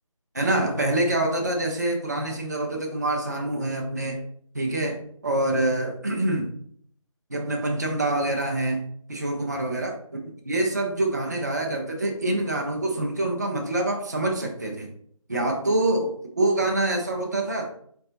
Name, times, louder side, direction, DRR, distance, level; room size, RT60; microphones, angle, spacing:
voice 1, 0.3-4.2 4.5-6.5 7.3-8.8 9.1-10.0 10.2-14.9 15.3-17.7, right 1 dB, 30° right, 1 dB, 0.5 m, -26 dB
4.3 x 2.3 x 3.8 m, 0.63 s
figure-of-eight pair, 175°, 18 cm